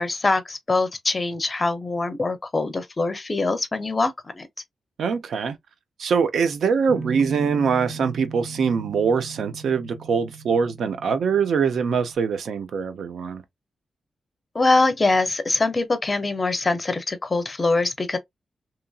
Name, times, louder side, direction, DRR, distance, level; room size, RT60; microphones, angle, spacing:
voice 1, 0.0-4.5 14.5-18.2, left 3 dB, 25° left, 0.5 m, -23 dB
voice 2, 5.0-5.6 6.0-13.4, right 6 dB, 75° right, 0.5 m, -23 dB
Guitar, 6.9-12.1, right 5 dB, 50° right, 0.8 m, -38 dB
2.8 x 2.5 x 2.3 m
wide cardioid pair, 140°, 0 cm